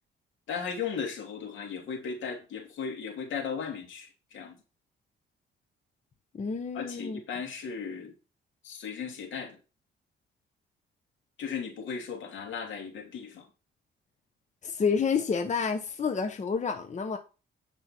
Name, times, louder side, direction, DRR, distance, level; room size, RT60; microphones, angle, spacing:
voice 1, 0.5-4.6 6.7-8.1 8.6-9.6 11.4-13.5, left 6 dB, 75° left, 2.8 m, -36 dB
voice 2, 6.3-7.2 14.6-17.2, left 5 dB, 35° left, 1.1 m, -29 dB
9.3 x 5.5 x 4.5 m
cardioid pair, 90°, 20 cm